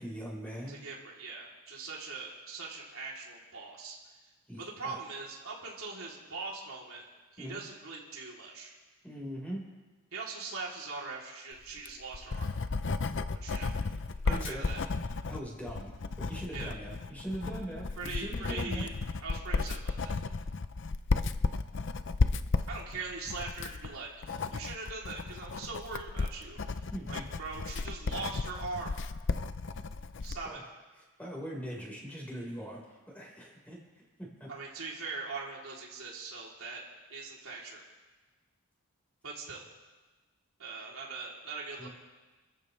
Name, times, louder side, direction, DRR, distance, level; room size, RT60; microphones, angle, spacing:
voice 1, 0.0-0.7 4.5-5.0 7.4-7.6 9.0-9.6 14.3-14.7 15.3-15.9 16.2-18.9 26.9-27.2 30.4-30.6 31.2-32.8 33.1-33.8 34.2-34.5 41.8-41.9, equal, 5° left, -4 dB, 4.6 m, -41 dB
voice 2, 0.7-4.2 4.6-7.0 7.3-8.7 10.1-12.5 13.4-13.7 14.2-14.8 16.5-16.7 18.0-18.9 19.2-20.1 22.7-26.6 27.1-28.9 30.2-30.6 34.5-36.8 37.1-37.8 39.2-39.6 40.6-41.9, right 4 dB, 70° right, -3 dB, 3.4 m, -41 dB
Writing, 11.7-30.5, left 3 dB, 55° left, 0.6 m, -34 dB
29.5 x 14.5 x 3.4 m, 1.2 s
head